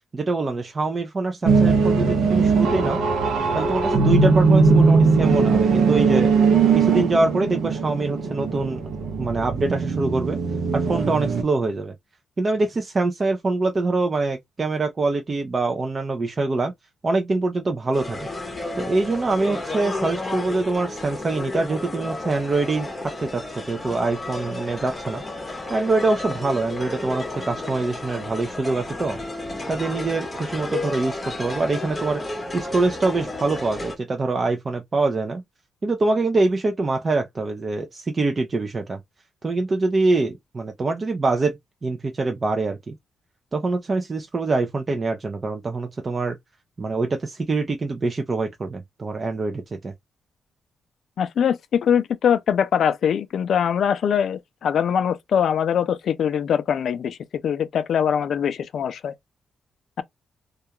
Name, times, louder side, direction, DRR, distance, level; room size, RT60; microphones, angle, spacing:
voice 1, 0.1-3.0 3.5-6.3 6.7-8.8 9.2-10.4 10.7-11.9 12.4-16.7 17.0-18.2 18.8-22.9 23.2-25.2 25.7-29.2 29.7-35.4 35.8-39.0 39.4-42.9 43.5-46.4 46.8-49.9, right 3 dB, 30° right, 0.4 m, -24 dB
sound 1, 1.4-11.4, right 4 dB, 85° right, 0.7 m, -19 dB
sound 2, 17.9-34.0, left 2 dB, 20° left, 0.7 m, -32 dB
voice 2, 51.2-57.2 57.4-59.1, left 8 dB, 70° left, 0.3 m, -22 dB
2.3 x 2.3 x 2.7 m
cardioid pair, 110°, 0 cm